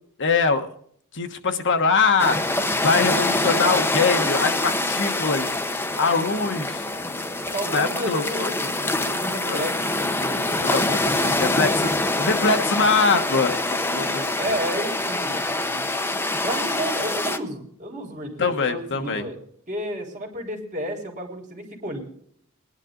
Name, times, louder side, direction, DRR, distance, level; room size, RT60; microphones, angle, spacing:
voice 1, 0.2-0.7 1.1-2.4 2.8-5.6 6.0-6.9 7.7-8.5 9.4-9.7 10.6-11.1 11.4-11.9 12.2-14.6 18.4-19.3, left 4 dB, 55° left, 7 dB, 1.3 m, -23 dB
sound 1, 2.2-17.4, left 2 dB, 10° left, 0.9 m, -25 dB
voice 2, 7.5-10.7 11.0-11.5 14.4-15.9 16.4-19.4 19.7-22.0, right 1 dB, 35° right, 1 dB, 4.2 m, -32 dB
20.5 x 11.0 x 3.9 m, 0.63 s
head